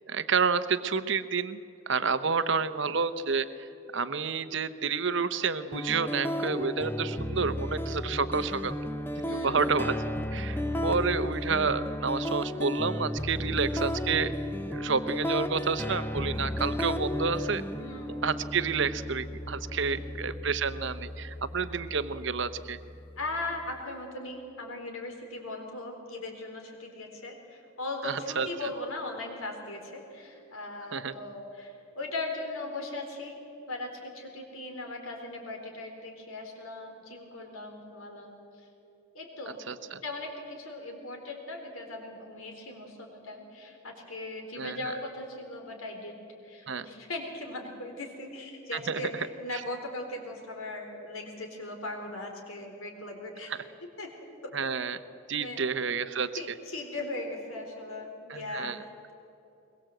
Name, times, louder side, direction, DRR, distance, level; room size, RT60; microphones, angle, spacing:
voice 1, 0.1-1.6 1.9-8.7 9.2-10.0 10.3-14.3 14.7-17.6 18.2-22.8 28.0-28.5 30.9-31.1 39.7-40.0 44.6-44.8 46.7-46.9 48.7-49.3 49.5-49.6 54.5-55.0 55.3-56.3 58.3-58.8, right 5 dB, 60° right, 12 dB, 0.8 m, -29 dB
sound 1, 5.7-23.7, left 1 dB, 10° left, 0.7 m, -34 dB
voice 2, 9.2-9.8 13.4-13.5 17.8-18.2 19.9-20.0 21.6-21.8 23.2-33.4 33.7-38.7 39.1-39.6 40.0-53.5 54.0-54.6 55.3-55.7 56.3-59.1, left 2 dB, 85° left, 3 dB, 4.1 m, -39 dB
22.5 x 21.5 x 7.8 m, 2.8 s
head